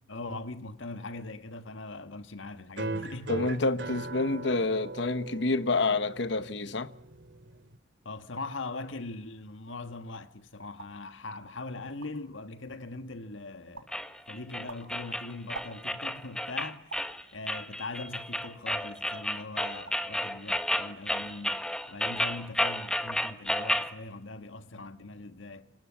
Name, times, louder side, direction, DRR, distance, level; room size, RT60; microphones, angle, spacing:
voice 1, 0.1-3.3 8.0-13.9 14.3-16.9 17.3-25.7, left 2 dB, 75° left, 1.6 m, -41 dB
sound 1, 2.8-7.8, right 2 dB, 60° right, 3.0 m, -39 dB
voice 2, 3.3-6.9, left 3 dB, 60° left, 1.0 m, -28 dB
sound 2, 10.8-11.1 11.6-11.7 11.8-12.4 12.9-13.3 13.7-14.0 14.4-16.1 16.9-17.2 17.8-18.7 19.1-19.3 19.6-20.1 20.4-20.9, right 3 dB, 80° right, 7.6 m, -48 dB
sound 3, 13.9-23.9, left 1 dB, 5° left, 1.3 m, -32 dB
28.5 x 25.5 x 7.4 m
head